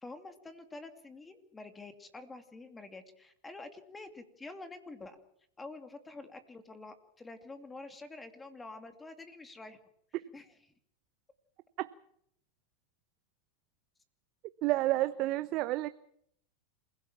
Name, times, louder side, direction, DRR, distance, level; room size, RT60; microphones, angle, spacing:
voice 1, 0.0-5.2 5.6-9.8 10.3-10.6, left 3 dB, 15° left, 8 dB, 2.5 m, -48 dB
voice 2, 14.6-15.9, right 17 dB, 50° right, 13 dB, 0.8 m, -30 dB
27.0 x 16.5 x 7.4 m, 0.70 s
hypercardioid pair, 115°, 0 cm